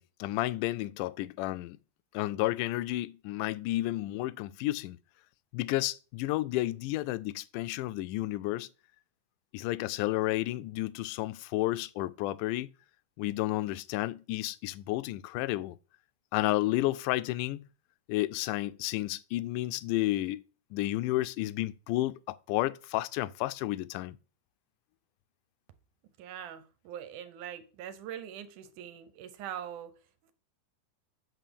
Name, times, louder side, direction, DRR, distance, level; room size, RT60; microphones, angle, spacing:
voice 1, 0.0-1.8 2.1-5.0 5.5-8.7 9.5-12.7 13.2-15.8 16.3-17.7 18.1-20.4 20.7-24.2, left 17 dB, 80° left, 2.0 m, -31 dB
voice 2, 26.2-29.9, right 9 dB, 75° right, 2.3 m, -42 dB
8.6 x 4.0 x 6.9 m
omnidirectional pair, 3.8 m